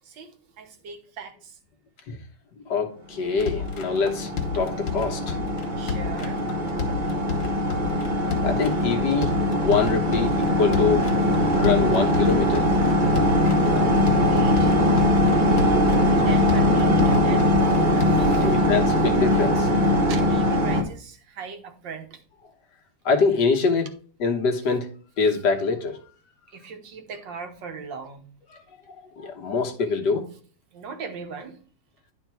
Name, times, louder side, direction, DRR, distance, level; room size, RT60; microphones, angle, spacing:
voice 1, 0.0-1.6 5.8-6.4 13.4-14.7 15.6-18.6 20.1-22.2 26.5-28.3 30.7-31.6, right 5 dB, 85° right, 6 dB, 1.9 m, -39 dB
voice 2, 2.6-4.3 4.5-5.4 8.4-11.2 11.5-12.7 18.4-19.7 23.0-23.9 24.2-24.9 25.2-26.0 28.9-30.3, left 4 dB, 70° left, 3 dB, 1.7 m, -24 dB
sound 1, 3.3-20.8, left 1 dB, 35° right, 0.9 m, -21 dB
sound 2, 3.4-18.4, left 6 dB, 90° left, 1.9 m, -32 dB
10.5 x 4.3 x 4.5 m, 0.42 s
omnidirectional pair, 1.9 m